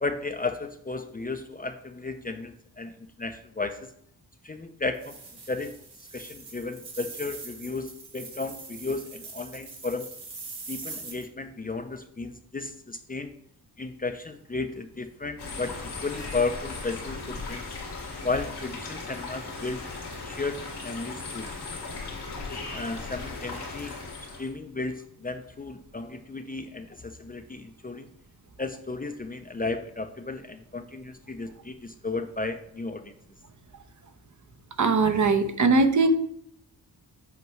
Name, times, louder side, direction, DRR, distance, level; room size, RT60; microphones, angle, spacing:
voice 1, 0.0-2.9 3.2-3.9 4.4-5.2 5.5-5.7 6.1-10.1 10.7-13.3 13.8-17.6 18.2-19.9 20.2-21.5 22.5-23.9 24.4-28.1 28.6-33.1, left 3 dB, 25° left, 8 dB, 0.5 m, -34 dB
sound 1, 4.9-11.2, right 4 dB, 85° right, 1.6 m, -42 dB
sound 2, 15.4-24.5, left 3 dB, 90° left, 2.1 m, -37 dB
voice 2, 34.8-36.1, right 3 dB, 50° right, 8 dB, 0.8 m, -21 dB
8.0 x 4.6 x 3.1 m, 0.69 s
cardioid pair, 75°, 39 cm